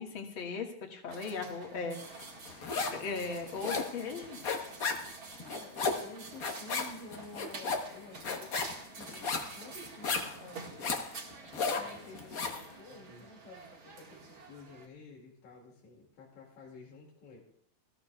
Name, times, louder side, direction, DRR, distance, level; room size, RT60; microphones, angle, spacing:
voice 1, 0.0-2.0 2.9-4.4, left 4 dB, 50° left, 1 dB, 2.3 m, -37 dB
sound 1, 1.1-14.9, right 3 dB, 45° right, 2.5 m, -49 dB
sound 2, 2.2-3.1 3.3-12.6, left 4 dB, 65° left, 0.8 m, -35 dB
voice 2, 5.4-8.6 8.9-11.0 11.6-17.4, left 3 dB, 80° left, -2 dB, 3.7 m, -51 dB
19.0 x 14.5 x 2.3 m, 0.65 s
omnidirectional pair, 3.3 m